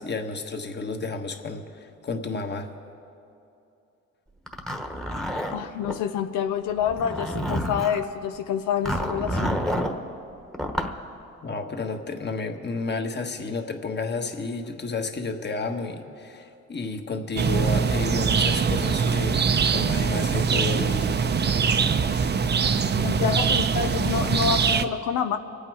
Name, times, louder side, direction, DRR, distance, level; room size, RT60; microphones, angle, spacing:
voice 1, 0.0-2.7 11.4-21.1, left 3 dB, 35° left, 5 dB, 1.4 m, -31 dB
Zipper (clothing), 4.5-6.0 6.8-8.0 8.9-10.0 10.5-11.0, equal, ahead, 1.2 m, -28 dB
voice 2, 5.5-9.6 23.0-25.4, left 8 dB, 90° left, 7 dB, 0.7 m, -27 dB
sound 1, 17.4-24.8, right 6 dB, 35° right, 0.7 m, -23 dB
25.0 x 8.7 x 4.8 m, 2.7 s
cardioid pair, 90°, 30 cm